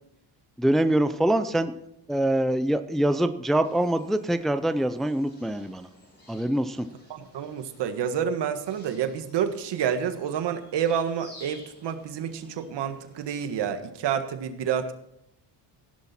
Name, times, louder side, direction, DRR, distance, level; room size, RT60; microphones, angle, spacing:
voice 1, 0.6-1.7 2.1-5.9 6.3-6.9, right 1 dB, ahead, 10 dB, 0.6 m, -24 dB
sound 1, 3.6-13.4, left 1 dB, 25° left, 6.8 m, -54 dB
voice 2, 7.1-14.9, right 8 dB, 65° right, 8 dB, 1.7 m, -29 dB
15.0 x 11.0 x 4.4 m, 0.82 s
cardioid pair, 105°, 44 cm